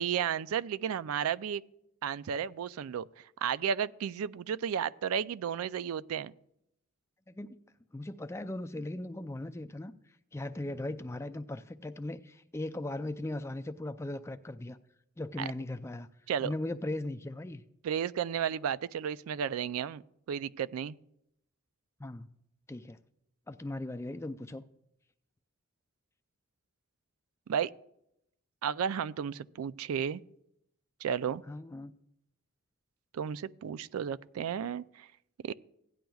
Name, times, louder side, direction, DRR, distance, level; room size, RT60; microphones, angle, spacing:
voice 1, 0.0-1.6 2.0-3.1 3.4-6.3 15.4-15.5 16.3-16.5 17.8-20.0 20.3-21.0 27.5-27.7 28.6-30.2 31.0-31.4 33.1-35.1 35.4-35.5, right 8 dB, 90° right, 0.3 m, -33 dB
voice 2, 7.3-7.6 7.9-9.9 10.3-14.8 15.2-16.1 16.4-17.6 22.0-22.4 22.7-23.0 23.5-24.7 31.5-31.9, left 1 dB, 15° left, 0.3 m, -38 dB
16.5 x 10.5 x 2.3 m
head